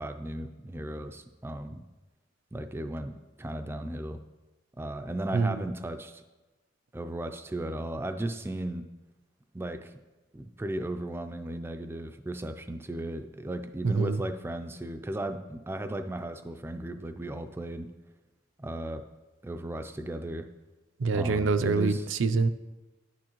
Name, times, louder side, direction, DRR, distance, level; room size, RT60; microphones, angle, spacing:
voice 1, 0.0-1.8 2.5-4.2 4.8-6.2 6.9-8.9 9.5-9.9 10.3-17.9 18.6-19.0 19.4-20.5 21.1-22.1, right 1 dB, 10° right, 7 dB, 0.3 m, -36 dB
voice 2, 5.3-5.6 13.8-14.2 21.0-22.5, right 4 dB, 75° right, 10 dB, 0.5 m, -25 dB
9.6 x 8.8 x 3.0 m, 1.1 s
head